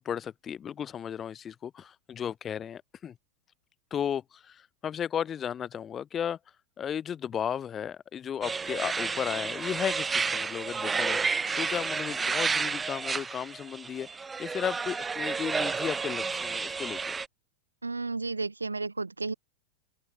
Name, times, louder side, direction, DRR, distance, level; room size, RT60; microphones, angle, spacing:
voice 1, 0.0-3.2 3.9-6.4 6.8-17.2, left 8 dB, 25° left, 3.6 m, -34 dB
sound 1, 8.4-17.3, right 5 dB, 15° right, 2.9 m, -31 dB
voice 2, 17.8-19.3, right 3 dB, 80° right, 1.1 m, -32 dB
figure-of-eight pair, 90°, 0 cm